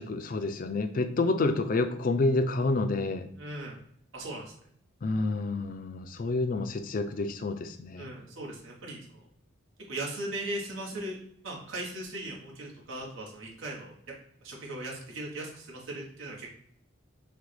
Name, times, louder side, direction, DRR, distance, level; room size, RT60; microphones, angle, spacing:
voice 1, 0.0-3.3 5.0-8.1, left 3 dB, 40° left, 9 dB, 0.3 m, -29 dB
voice 2, 3.4-3.8 4.1-4.5 8.0-9.3 9.9-11.2 11.4-13.9 14.4-16.5, right 1 dB, 75° right, -2 dB, 1.1 m, -38 dB
6.1 x 2.2 x 3.2 m, 0.66 s
head